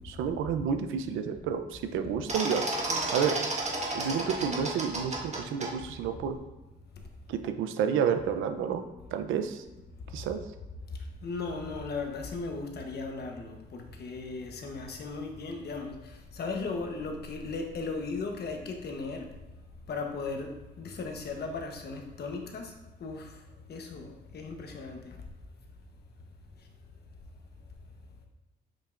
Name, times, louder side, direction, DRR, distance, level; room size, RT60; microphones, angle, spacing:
voice 1, 0.0-2.6 2.9-3.4 3.9-6.4 7.3-8.8 9.1-9.6 10.1-10.4, right 7 dB, 90° right, 8 dB, 0.7 m, -30 dB
sound 1, 2.3-5.7, right 2 dB, 35° right, 1.6 m, -31 dB
voice 2, 11.2-19.3 19.9-20.5 20.8-22.7 23.0-23.3 23.7-25.2, left 4 dB, 55° left, 3 dB, 1.1 m, -36 dB
7.1 x 5.5 x 2.6 m, 1.1 s
cardioid pair, 90°, 20 cm